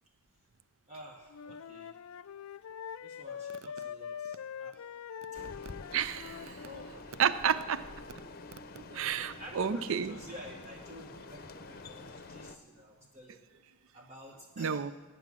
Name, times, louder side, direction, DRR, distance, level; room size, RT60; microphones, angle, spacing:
voice 1, 0.9-1.9 3.0-4.9 5.3-5.4 6.4-7.2 8.9-13.4 13.9-14.8, equal, 30° right, 1 dB, 1.0 m, -51 dB
Wind instrument woodwind instrument, 1.3-6.9, left 8 dB, 65° left, 0.4 m, -43 dB
sound 1, 5.3-12.6, left 3 dB, 40° left, 0.7 m, -48 dB
voice 2, 5.9-6.4 7.2-7.8 8.8-10.2 14.6-14.9, right 7 dB, 60° right, 14 dB, 0.4 m, -30 dB
18.0 x 9.7 x 6.1 m, 1.3 s
head